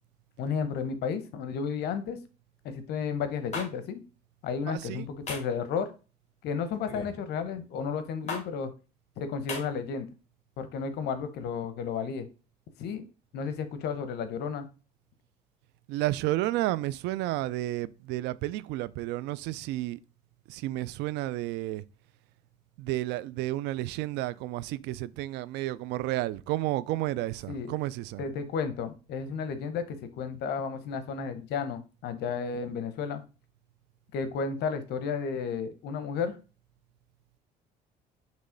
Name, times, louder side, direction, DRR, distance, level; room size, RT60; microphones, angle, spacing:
voice 1, 0.4-2.2 2.6-4.0 4.4-5.9 6.4-8.7 9.2-10.1 10.6-12.3 12.8-13.0 13.3-14.7 27.5-27.7 28.2-33.2 34.1-36.4, left 6 dB, 75° left, 0.9 m, -32 dB
sound 1, 3.5-3.7 5.3-5.6 6.9-7.2 8.3-8.4 9.5-9.6, left 3 dB, 40° left, 2.2 m, -35 dB
voice 2, 4.7-5.1 15.9-20.0 20.5-21.8 22.8-28.2, right 16 dB, 90° right, 0.4 m, -31 dB
6.1 x 3.2 x 5.0 m
cardioid pair, 110°, 17 cm